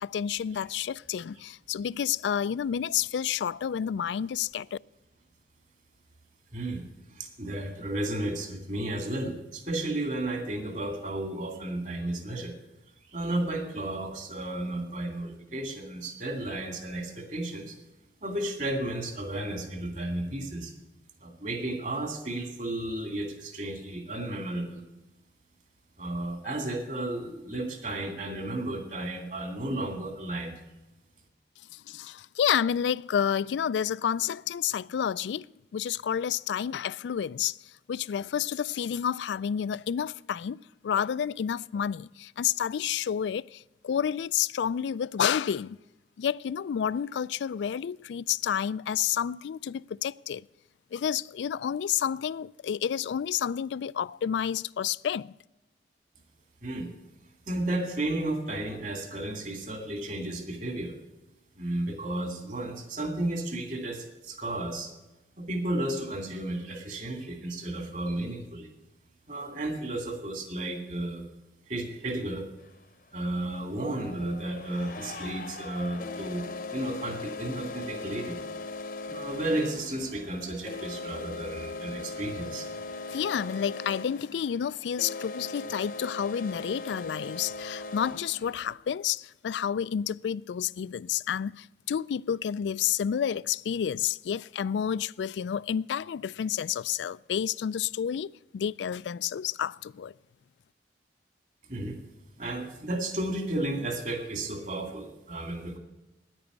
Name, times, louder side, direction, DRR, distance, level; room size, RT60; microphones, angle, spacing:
voice 1, 0.0-4.8 31.7-35.5 35.7-37.6 37.9-45.8 46.2-50.5 50.9-55.3 83.1-100.1, left 8 dB, 85° left, 0.3 m, -30 dB
voice 2, 6.5-12.5 13.0-17.8 18.2-20.7 21.2-24.8 26.0-30.6 56.6-56.9 57.5-61.0 61.6-64.9 65.4-68.7 69.3-71.2 71.7-72.5 73.1-78.4 79.1-82.7 83.1-83.2 101.7-102.0 102.4-105.8, right 1 dB, 45° right, 2.3 m, -33 dB
sound 1, 72.6-72.7 73.7-88.7, left 3 dB, 50° left, 0.8 m, -39 dB
10.5 x 8.9 x 8.1 m
head